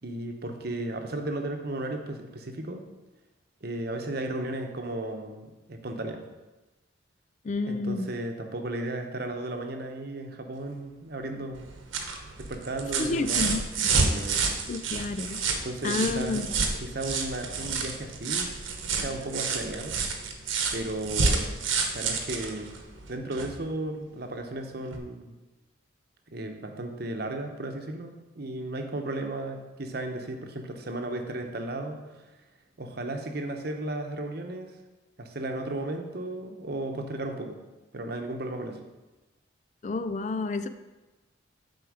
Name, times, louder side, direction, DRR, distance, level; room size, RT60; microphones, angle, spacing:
voice 1, 0.0-2.8 3.6-6.2 7.6-11.6 12.4-13.6 14.1-14.4 15.5-16.4 16.8-18.5 18.9-20.0 20.7-21.5 21.9-22.7 23.1-25.3 26.3-32.2 32.8-34.7 35.2-37.6 37.9-38.8, right 2 dB, 50° right, 5 dB, 0.9 m, -35 dB
voice 2, 7.4-8.1 13.0-13.6 14.3-14.4 14.7-15.4 15.8-16.5 39.8-40.7, left 3 dB, 35° left, 10 dB, 0.3 m, -29 dB
sound 1, 11.5-23.6 24.9-25.0, right 4 dB, 80° right, 1.1 m, -29 dB
8.0 x 4.6 x 6.3 m, 1.1 s
head